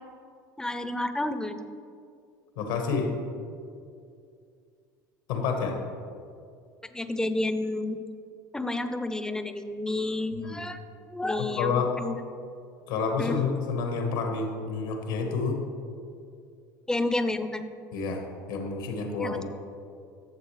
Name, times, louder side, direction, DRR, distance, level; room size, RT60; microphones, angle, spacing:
voice 1, 0.6-1.7 6.9-8.0 8.5-10.8 11.1-12.2 13.2-13.4 16.9-17.7 19.2-19.4, left 2 dB, 5° left, 10 dB, 0.6 m, -30 dB
voice 2, 2.6-3.1 5.3-5.8 10.4-10.6 11.4-11.9 12.9-15.6 17.9-19.4, left 5 dB, 75° left, 3 dB, 1.4 m, -29 dB
12.0 x 7.3 x 3.3 m, 2.4 s
hypercardioid pair, 75°, 11 cm